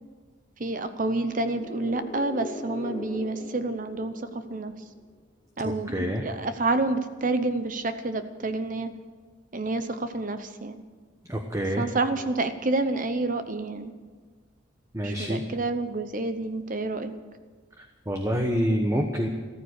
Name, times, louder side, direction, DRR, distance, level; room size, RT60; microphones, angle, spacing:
voice 1, 0.6-4.7 5.6-8.9 9.5-10.8 11.8-13.9 15.0-17.1, right 2 dB, 40° right, 10 dB, 0.8 m, -29 dB
sound 1, 1.2-5.0, left 2 dB, 30° left, 0.7 m, -40 dB
voice 2, 5.6-6.2 11.3-11.9 14.9-15.4 17.8-19.3, equal, 15° right, 3 dB, 1.1 m, -27 dB
14.5 x 14.0 x 6.6 m, 1.5 s
head